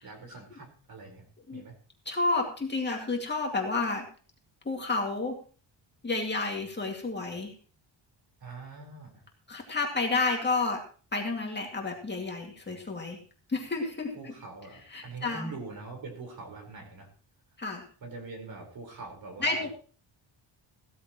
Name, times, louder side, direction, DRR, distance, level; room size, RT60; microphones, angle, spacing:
voice 1, 0.0-1.3 1.5-1.8 8.4-9.2 14.1-17.1 18.0-19.7, right 3 dB, 50° right, 2 dB, 4.6 m, -43 dB
voice 2, 2.1-4.0 4.7-5.4 6.0-7.5 9.5-10.8 11.1-13.2 13.5-14.1 14.9-15.5 17.6-17.8 19.4-19.7, left 3 dB, 20° left, 1 dB, 2.3 m, -30 dB
16.5 x 13.5 x 3.1 m, 0.39 s
wide cardioid pair, 175°, 46 cm